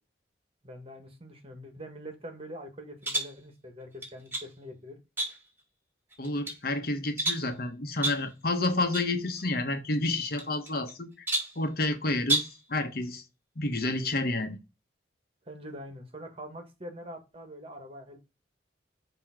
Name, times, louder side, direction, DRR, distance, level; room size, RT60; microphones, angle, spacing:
voice 1, 0.6-5.0 15.4-18.2, equal, 35° right, 1.6 m, -44 dB
sound 1, 3.0-3.4 4.0-4.5 5.2-5.6 6.1-6.6 7.2-7.5 8.0-8.3 8.9-9.1 9.4-9.5 10.4-10.9 11.3-11.6 12.2-12.6, right 1 dB, 15° right, 2.4 m, -31 dB
voice 2, 6.2-11.3 11.6-13.2 13.6-14.6, left 2 dB, 55° left, 1.1 m, -30 dB
6.9 x 3.0 x 5.9 m
head